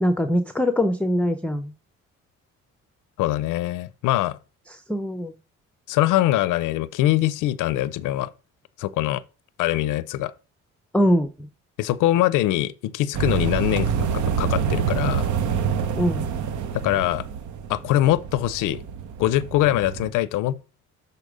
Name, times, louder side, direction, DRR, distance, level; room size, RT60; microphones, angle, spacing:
voice 1, 0.0-1.7 4.7-5.3 10.9-11.5 16.0-16.3, equal, 5° left, 0.5 m, -22 dB
voice 2, 3.2-4.4 5.9-8.3 8.8-9.2 9.6-10.3 11.8-15.3 16.7-17.2 17.7-18.8 19.2-20.6, left 14 dB, 85° left, 0.5 m, -23 dB
sound 1, 13.1-20.1, right 7 dB, 75° right, 0.8 m, -27 dB
6.7 x 4.1 x 4.9 m
cardioid pair, 90°, 30 cm